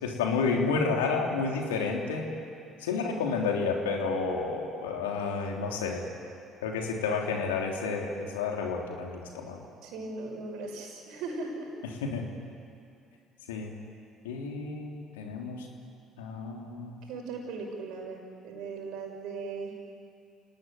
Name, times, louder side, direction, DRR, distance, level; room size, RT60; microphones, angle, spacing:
voice 1, 0.0-2.3 2.8-6.0 6.6-9.6 11.8-12.3 13.5-13.7 14.2-15.7 16.2-17.0, left 4 dB, 80° left, 1 dB, 3.4 m, -30 dB
voice 2, 9.8-11.7 17.1-19.7, right 3 dB, 65° right, 2 dB, 6.1 m, -38 dB
30.0 x 18.5 x 9.4 m, 2.5 s
hypercardioid pair, 55°, 0 cm